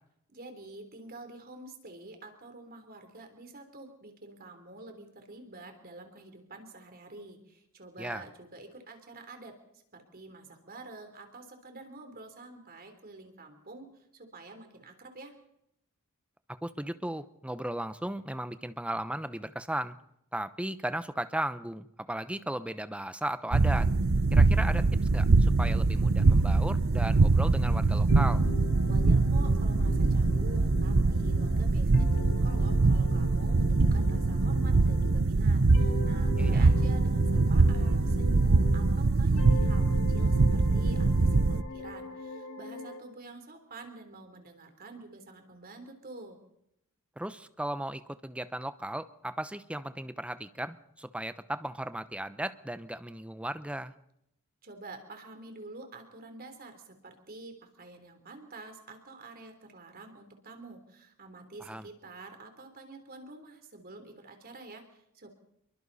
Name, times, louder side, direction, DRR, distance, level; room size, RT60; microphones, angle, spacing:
voice 1, 0.3-9.5 9.9-13.9 14.1-15.3 28.9-46.4 54.6-65.3, right 2 dB, 45° right, 6 dB, 3.5 m, -48 dB
voice 2, 16.6-19.9 20.3-23.9 24.3-24.9 25.1-28.4 36.3-36.6 47.2-53.9 61.6-61.9, right 1 dB, 5° right, 12 dB, 0.8 m, -36 dB
sound 1, 23.5-41.6, right 3 dB, 70° right, 0.8 m, -23 dB
sound 2, 28.1-35.3 35.7-39.1 39.4-43.0, left 3 dB, 65° left, 2.8 m, -41 dB
27.5 x 23.0 x 4.2 m, 0.76 s
head